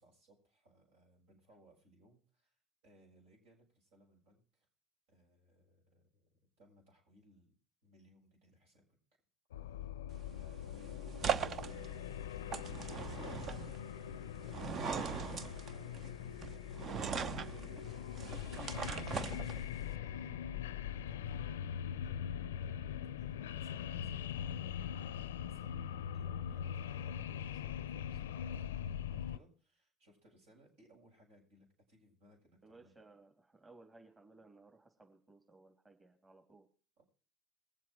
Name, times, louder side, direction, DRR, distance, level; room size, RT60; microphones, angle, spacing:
voice 1, 0.0-4.7 5.1-7.5 7.8-9.0 9.6-9.9 10.3-11.8 12.3-18.6 19.0-25.8 26.1-32.9 37.0-37.1, right 1 dB, 75° right, -1 dB, 7.1 m, -66 dB
sound 1, 9.5-29.4, left 9 dB, 90° left, 0.5 m, -42 dB
sound 2, 10.1-19.9, right 7 dB, 50° right, 0.9 m, -41 dB
voice 2, 32.6-36.7, right 3 dB, 25° right, 3 dB, 3.3 m, -60 dB
22.0 x 7.5 x 4.7 m, 0.41 s
hypercardioid pair, 70°, 0 cm